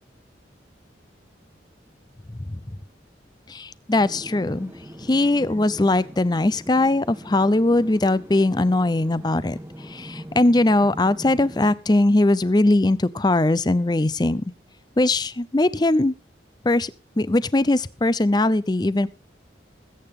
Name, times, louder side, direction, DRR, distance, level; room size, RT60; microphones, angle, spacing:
voice 1, 3.5-4.7 5.0-14.4 15.0-16.1 16.6-16.9 17.2-19.1, left 2 dB, 20° left, 17 dB, 0.5 m, -20 dB
sound 1, 3.9-11.8, equal, 10° right, 1.3 m, -41 dB
21.0 x 8.8 x 3.7 m, 0.33 s
head